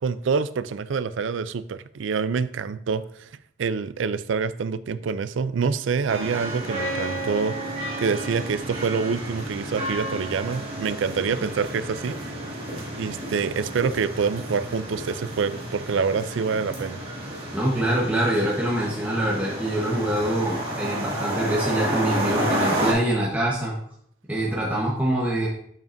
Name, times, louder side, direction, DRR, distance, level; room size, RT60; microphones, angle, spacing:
voice 1, 0.0-3.3 3.6-7.6 8.0-12.2 12.9-17.0, right 5 dB, 80° right, 14 dB, 0.4 m, -26 dB
sound 1, 6.1-22.9, right 1 dB, 30° right, 2.2 m, -31 dB
voice 2, 17.5-23.7 24.3-25.5, right 1 dB, 10° right, -5 dB, 1.2 m, -24 dB
7.8 x 7.2 x 2.6 m, 0.65 s
head